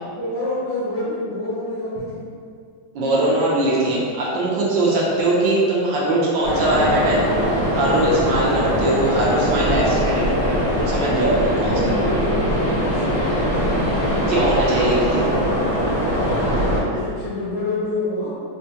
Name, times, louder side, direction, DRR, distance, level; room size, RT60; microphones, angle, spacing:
voice 1, 0.2-2.1 11.5-14.0 16.3-18.3, left 2 dB, 85° left, -10 dB, 1.7 m, -27 dB
voice 2, 2.9-7.2 7.7-11.7 14.3-15.3, right 1 dB, 75° right, -5 dB, 1.2 m, -21 dB
sound 1, 6.4-16.8, equal, 45° right, 1.1 m, -21 dB
4.3 x 2.2 x 2.7 m, 2.2 s
omnidirectional pair, 2.2 m